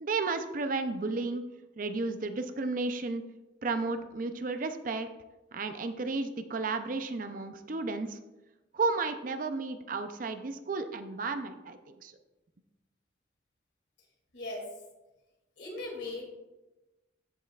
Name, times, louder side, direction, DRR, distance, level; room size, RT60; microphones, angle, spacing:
voice 1, 0.0-1.4 1.8-3.2 3.6-5.1 5.5-8.2 8.7-12.1, right 3 dB, 45° right, 8 dB, 0.5 m, -33 dB
voice 2, 14.3-14.6 15.6-16.3, left 2 dB, 65° left, -1 dB, 2.5 m, -38 dB
14.0 x 5.5 x 2.4 m, 1.1 s
head